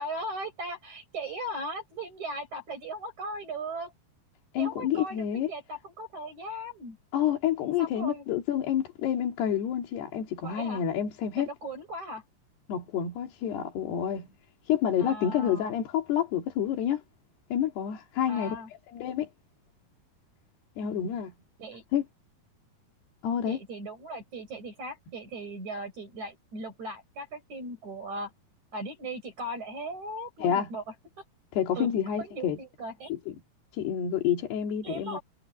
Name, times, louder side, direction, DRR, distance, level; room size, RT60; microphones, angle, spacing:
voice 1, 0.0-3.9 4.6-7.0 7.8-8.2 10.4-10.8 11.2-12.2 15.0-15.7 18.3-18.7 20.8-21.1 21.6-21.8 23.5-28.3 28.7-30.8 31.8-31.9 32.2-33.1 34.8-35.2, right 1 dB, 45° right, 8.1 m, -38 dB
voice 2, 4.5-5.5 7.1-11.5 12.7-14.3 14.7-17.0 17.5-18.6 18.9-19.3 20.8-21.3 21.9-22.0 23.2-23.6 30.4-30.7 31.5-32.6 33.1-33.2 33.7-35.2, left 9 dB, 90° left, 4.4 m, -28 dB
omnidirectional pair, 4.5 m